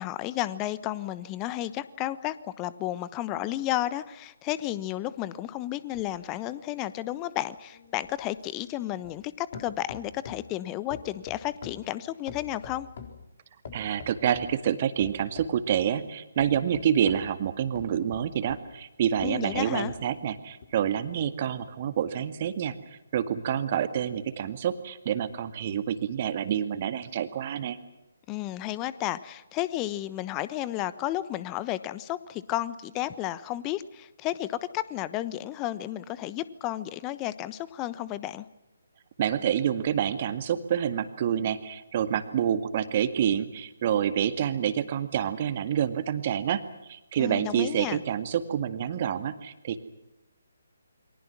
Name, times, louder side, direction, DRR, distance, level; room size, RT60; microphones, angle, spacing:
voice 1, 0.0-12.9 19.2-19.9 28.3-38.5 47.2-48.0, left 14 dB, 20° left, 16 dB, 1.1 m, -32 dB
sound 1, 5.9-9.3 9.5-10.5 10.9-13.2 13.6-14.6 15.0-15.9 16.4-18.7 19.1-20.1 20.6-20.7, left 6 dB, 45° left, 4.1 m, -45 dB
voice 2, 13.7-22.8 23.1-27.8 39.2-46.6 46.9-49.8, right 9 dB, 35° right, 9 dB, 2.0 m, -28 dB
29.0 x 23.5 x 6.2 m, 0.97 s
figure-of-eight pair, 140°, 0 cm